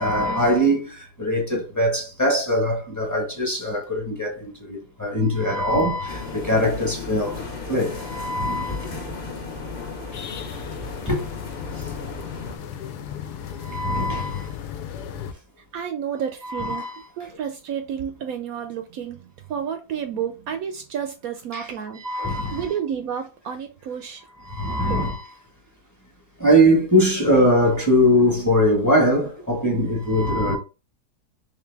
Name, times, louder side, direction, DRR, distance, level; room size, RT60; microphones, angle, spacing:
voice 1, 0.0-7.4 7.7-9.0 11.1-11.2 13.6-14.5 16.4-17.1 21.5-21.7 22.0-22.7 24.4-25.3 26.4-30.6, equal, 10° left, 1.1 m, -21 dB
sound 1, 6.1-12.6, left 4 dB, 40° left, 1.0 m, -35 dB
sound 2, 10.1-15.3, left 8 dB, 85° left, 1.2 m, -36 dB
voice 2, 15.7-16.8 17.2-22.0 22.5-24.2 24.9-25.1, right 8 dB, 70° right, 0.9 m, -31 dB
3.8 x 3.1 x 3.4 m
omnidirectional pair, 1.7 m